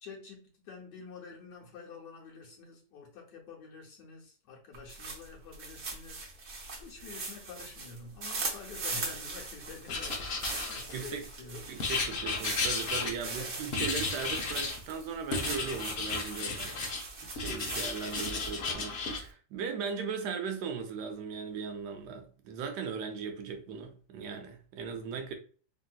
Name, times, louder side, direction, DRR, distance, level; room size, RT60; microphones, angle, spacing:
voice 1, 0.0-6.3 6.8-11.8 13.2-13.5, left 4 dB, 85° left, 1.6 m, -48 dB
sound 1, 4.7-18.7, right 3 dB, 50° right, 1.0 m, -41 dB
Writing, 9.9-11.2 11.8-13.4 13.7-14.8 15.3-17.0 17.4-19.2, left 4 dB, 60° left, 0.6 m, -34 dB
voice 2, 10.9-11.3 11.7-16.8 17.2-25.3, right 6 dB, 80° right, 1.2 m, -38 dB
3.4 x 2.6 x 2.2 m
omnidirectional pair, 1.8 m